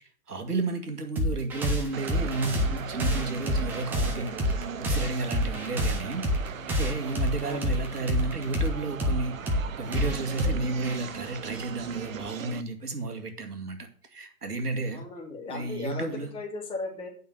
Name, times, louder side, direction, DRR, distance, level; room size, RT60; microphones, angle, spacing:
voice 1, 0.3-4.3 4.8-6.3 6.8-9.4 9.8-13.8 14.1-15.1 15.4-16.3, right 3 dB, 80° right, 5 dB, 2.3 m, -32 dB
sound 1, 1.2-12.2, equal, 5° right, 0.6 m, -29 dB
sound 2, 1.9-12.6, right 8 dB, 60° right, 1.0 m, -39 dB
voice 2, 14.9-17.1, left 3 dB, 10° left, -1 dB, 2.4 m, -37 dB
9.3 x 5.7 x 8.0 m, 0.43 s
figure-of-eight pair, 130°, 45 cm